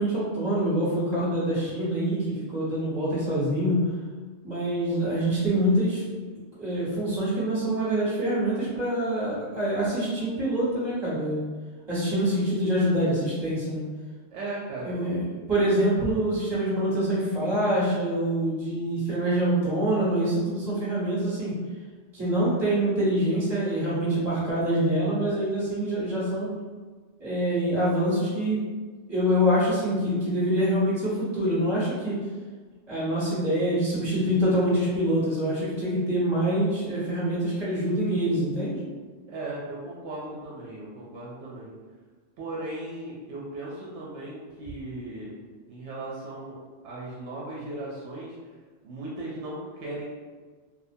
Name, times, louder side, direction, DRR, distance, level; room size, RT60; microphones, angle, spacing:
voice 1, 0.0-3.9 4.4-6.0 6.6-11.4 11.9-13.8 14.8-21.6 22.1-26.5 27.2-28.7 29.1-32.2 32.9-38.8, right 1 dB, 25° right, -9 dB, 1.1 m, -25 dB
voice 2, 14.3-14.9 39.3-41.7 42.4-45.3 45.7-46.6 46.8-48.4 48.8-50.0, right 2 dB, 75° right, -5 dB, 0.8 m, -37 dB
2.8 x 2.1 x 2.6 m, 1.4 s
omnidirectional pair, 1.2 m